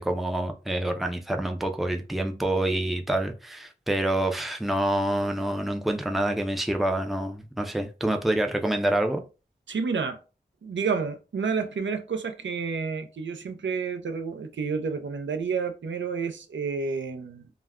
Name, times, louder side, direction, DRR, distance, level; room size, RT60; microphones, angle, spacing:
voice 1, 0.0-9.2, right 1 dB, ahead, 0.4 m, -27 dB
voice 2, 9.7-10.2 10.6-17.5, right 5 dB, 85° right, 0.4 m, -30 dB
2.2 x 2.1 x 3.4 m
wide cardioid pair, 60°, 19 cm